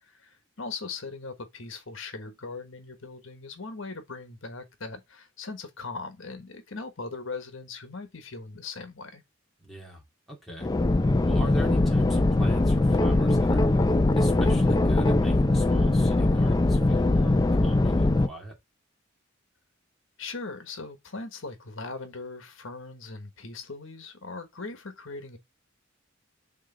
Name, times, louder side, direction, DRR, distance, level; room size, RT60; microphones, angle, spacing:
voice 1, 0.0-9.2 20.2-25.4, left 3 dB, 70° left, 1.3 m, -39 dB
voice 2, 9.6-10.0 10.3-10.7 11.2-13.7 14.2-18.5, equal, ahead, 2.3 m, -40 dB
sound 1, 10.6-18.3, left 2 dB, 20° left, 0.4 m, -22 dB
6.5 x 3.8 x 3.8 m
head